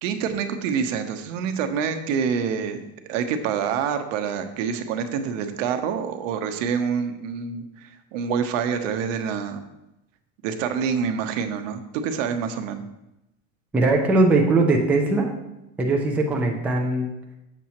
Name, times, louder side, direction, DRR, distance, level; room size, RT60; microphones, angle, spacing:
voice 1, 0.0-9.6 10.4-12.9, right 7 dB, 85° right, 8 dB, 0.9 m, -27 dB
voice 2, 13.7-15.3 15.8-17.1, right 2 dB, 5° right, 0 dB, 0.3 m, -20 dB
7.4 x 7.0 x 2.9 m, 0.91 s
cardioid pair, 160°, 37 cm